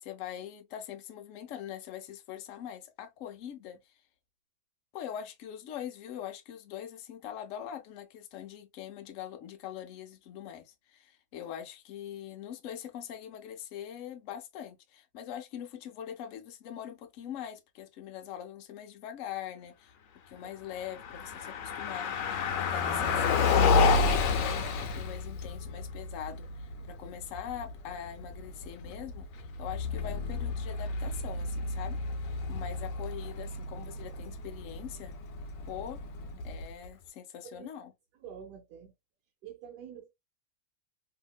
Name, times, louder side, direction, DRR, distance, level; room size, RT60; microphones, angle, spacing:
voice 1, 0.0-3.8 4.9-19.9 20.3-22.1 22.6-35.1 35.7-36.0 36.4-37.9, left 10 dB, 65° left, 0.8 m, -42 dB
Car passing by, 20.7-36.9, left 4 dB, 80° left, 1.3 m, -31 dB
voice 2, 38.2-38.9 39.4-40.1, right 8 dB, 75° right, 1.2 m, -47 dB
2.8 x 2.6 x 2.3 m
omnidirectional pair, 1.9 m